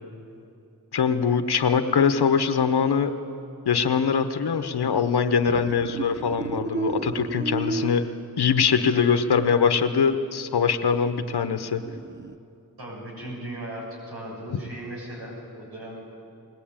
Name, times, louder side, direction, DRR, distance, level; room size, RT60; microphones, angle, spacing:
voice 1, 0.9-3.1 3.7-8.0 8.4-11.8, left 6 dB, 85° left, 8 dB, 1.0 m, -22 dB
sound 1, 5.5-8.2 11.6-12.4, right 3 dB, 30° right, 0.7 m, -32 dB
voice 2, 12.8-16.2, right 1 dB, 75° right, -4 dB, 7.2 m, -37 dB
21.0 x 18.0 x 8.8 m, 2.6 s
cardioid pair, 50°, 38 cm